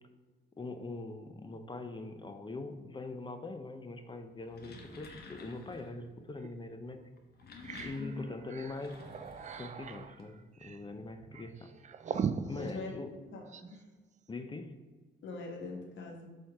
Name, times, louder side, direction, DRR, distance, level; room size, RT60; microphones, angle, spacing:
voice 1, 0.6-7.0 7.8-9.0 9.6-11.7 12.5-13.1 14.3-14.7, left 3 dB, 25° left, 7 dB, 0.6 m, -42 dB
sound 1, 4.3-6.0 7.1-10.2, left 3 dB, 50° left, 1.3 m, -51 dB
sound 2, 6.4-6.5 7.0-7.1 7.4-13.8, right 6 dB, 35° right, 0.4 m, -41 dB
voice 2, 12.5-12.9 13.3-13.8 15.2-16.2, left 3 dB, 70° left, 1 dB, 1.7 m, -42 dB
7.0 x 4.5 x 4.7 m, 1.3 s
cardioid pair, 90°, 20 cm